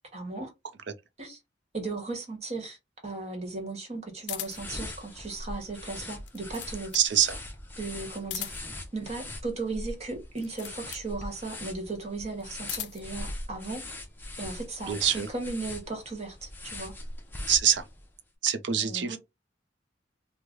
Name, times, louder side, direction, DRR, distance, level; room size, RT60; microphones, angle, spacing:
voice 1, 0.1-0.5 1.2-1.4 1.7-2.8 3.0-6.9 7.8-8.5 8.9-13.8 14.4-16.9 18.7-19.2, right 3 dB, 35° right, 1.2 m, -36 dB
sound 1, 4.2-4.8 6.1-7.1 8.2-8.8 10.3-11.1 12.3-13.1, left 13 dB, 70° left, 0.4 m, -39 dB
sound 2, 4.4-18.1, left 1 dB, 10° left, 0.6 m, -41 dB
voice 2, 6.9-7.4 14.9-15.3 17.5-17.8 18.4-19.2, right 9 dB, 80° right, 0.6 m, -25 dB
3.1 x 2.1 x 3.7 m
head